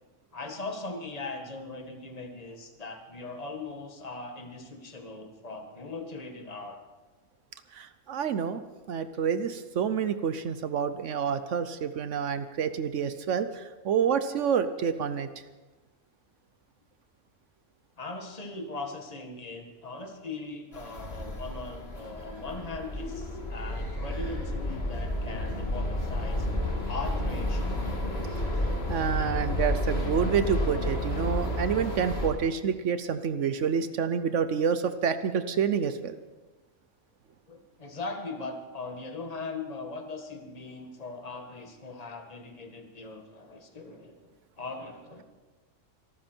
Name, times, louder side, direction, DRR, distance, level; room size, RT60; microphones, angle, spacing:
voice 1, 0.3-6.8 18.0-26.5 26.9-27.8 37.5-44.2 44.6-45.2, left 3 dB, 30° left, 4 dB, 1.8 m, -40 dB
voice 2, 7.7-8.6 8.9-15.3 28.9-36.2, right 7 dB, 75° right, 11 dB, 1.1 m, -28 dB
sound 1, 20.7-32.3, left 1 dB, 55° left, 2.8 m, -31 dB
24.5 x 13.0 x 4.5 m, 1.2 s
omnidirectional pair, 1.3 m